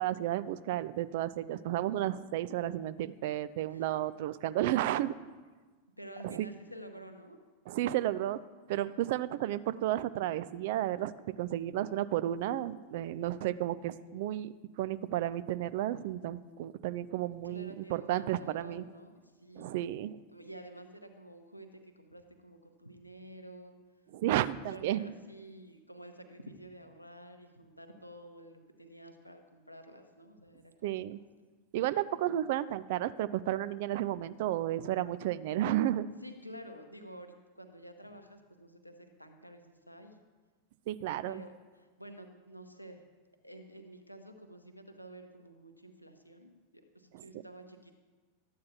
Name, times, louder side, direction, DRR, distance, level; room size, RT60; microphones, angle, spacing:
voice 1, 0.0-5.1 6.2-6.5 7.7-8.4 8.7-11.1 11.4-14.5 14.8-18.8 19.6-20.2 24.1-25.1 30.8-31.2 31.7-36.1 40.9-41.4 47.1-47.2, right 13 dB, 50° right, 15 dB, 0.3 m, -32 dB
voice 2, 3.7-4.1 6.0-7.4 8.9-9.1 17.4-19.7 20.3-23.8 24.7-31.1 36.2-40.2 41.2-43.0 43.4-48.0, right 1 dB, 90° left, 5 dB, 0.8 m, -50 dB
13.0 x 8.5 x 2.8 m, 1.4 s
figure-of-eight pair, 90°, 0 cm